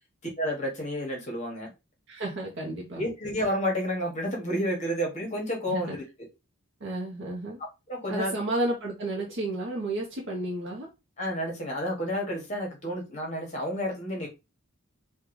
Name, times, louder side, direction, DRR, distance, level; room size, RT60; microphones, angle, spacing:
voice 1, 0.4-1.7 3.0-6.0 7.9-8.3 11.2-14.3, equal, 35° left, 1.1 m, -30 dB
voice 2, 2.1-3.0 5.7-6.0 6.8-7.6 8.1-10.9, right 1 dB, 55° right, 0.7 m, -32 dB
3.7 x 2.3 x 3.0 m
head